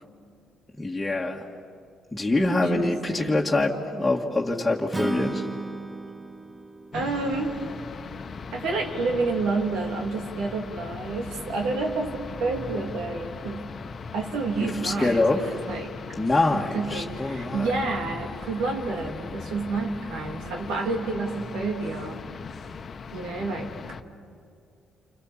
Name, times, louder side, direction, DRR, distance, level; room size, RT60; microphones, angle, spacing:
voice 1, 0.8-1.5 2.1-5.5 14.8-15.4 16.2-17.7, left 2 dB, 10° left, -4 dB, 1.8 m, -24 dB
voice 2, 2.4-3.4 6.9-7.6 8.5-13.7 14.1-15.9 16.5-22.2 23.1-23.7, right 3 dB, 90° right, 2 dB, 3.0 m, -29 dB
Acoustic guitar / Strum, 4.9-8.2, right 3 dB, 15° right, 0.8 m, -35 dB
sound 1, 6.9-24.0, left 5 dB, 45° left, 1.0 m, -39 dB
29.0 x 25.0 x 7.5 m, 2.4 s
cardioid pair, 90°, 0 cm